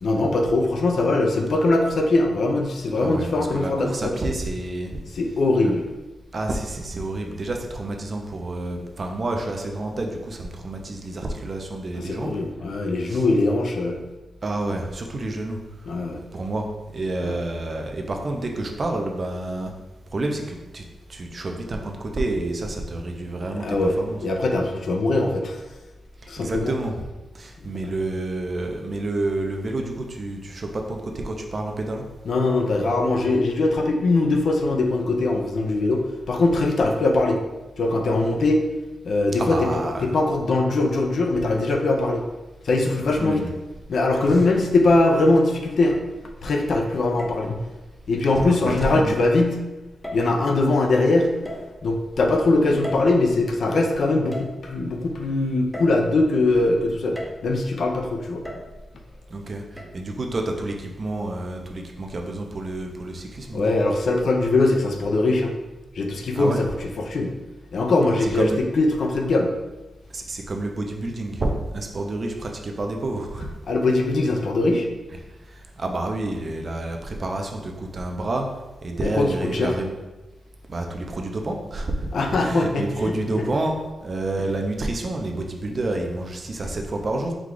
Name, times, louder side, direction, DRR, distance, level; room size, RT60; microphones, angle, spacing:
voice 1, 0.0-4.1 5.2-5.8 12.1-14.0 15.9-16.2 17.2-17.4 23.5-24.0 24.2-25.7 26.3-26.7 27.7-27.9 32.3-37.4 37.8-38.6 39.0-42.2 42.6-43.4 43.9-45.9 46.4-47.6 48.1-49.6 50.1-51.3 51.8-58.4 63.5-65.5 66.0-67.3 67.7-69.5 73.7-74.9 79.0-79.7 82.1-82.8 83.3-83.4, left 2 dB, 60° left, 3 dB, 0.5 m, -21 dB
voice 2, 3.0-4.9 5.6-5.7 6.3-12.4 13.0-13.3 14.4-15.6 16.3-16.7 16.9-19.7 20.1-20.8 21.1-24.2 26.4-27.0 27.3-32.0 39.4-40.2 42.9-43.6 44.3-44.5 48.3-49.2 59.3-63.7 66.3-66.6 68.2-68.6 70.1-73.5 75.5-78.5 78.8-79.9 80.7-82.1 82.4-87.3, right 2 dB, 40° right, 2 dB, 0.5 m, -29 dB
sound 1, 44.6-45.2 45.9-46.5 47.2-47.5 48.7-49.0 50.0-50.6 51.5-52.1 52.8-53.7 54.3-55.0 55.7-56.5 57.2-57.7 58.5-59.1 59.8-59.9, left 1 dB, 5° left, 0.6 m, -38 dB
4.8 x 2.3 x 3.8 m, 1.1 s
wide cardioid pair, 115°, 0 cm